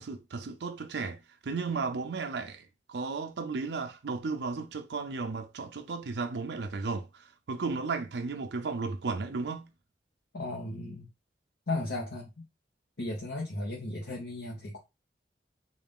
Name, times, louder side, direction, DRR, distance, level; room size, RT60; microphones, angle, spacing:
voice 1, 0.0-2.6 2.9-7.1 7.5-9.7, right 4 dB, 70° right, 0.5 m, -34 dB
voice 2, 10.3-11.1 11.7-12.4 13.0-14.8, left 2 dB, 85° left, 1.0 m, -35 dB
3.9 x 2.4 x 3.6 m
head